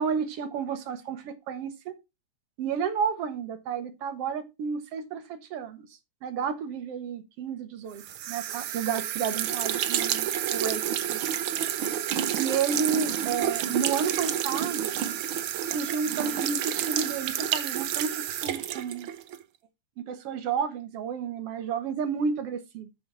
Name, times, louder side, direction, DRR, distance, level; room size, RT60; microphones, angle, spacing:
voice 1, 0.0-2.0 2.6-5.9 6.2-10.8 11.1-11.3 12.4-15.0 15.6-19.1 20.1-22.9, right 6 dB, 60° right, 2.1 m, -31 dB
sound 1, 8.0-19.4, right 10 dB, 85° right, 1.1 m, -29 dB
8.8 x 6.6 x 4.2 m
omnidirectional pair, 3.3 m